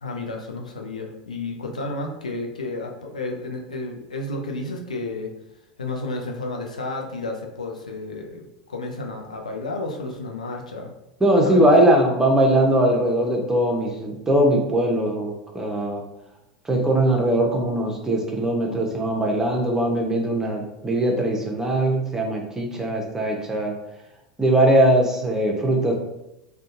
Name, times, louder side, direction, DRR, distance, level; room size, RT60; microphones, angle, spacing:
voice 1, 0.0-5.3 5.8-10.9 11.4-11.7, left 2 dB, 90° left, 2 dB, 0.4 m, -31 dB
voice 2, 11.2-16.0 16.6-23.7 24.4-25.9, right 1 dB, 15° right, 1 dB, 0.6 m, -20 dB
2.6 x 2.2 x 2.6 m, 0.89 s
hypercardioid pair, 85°, 4 cm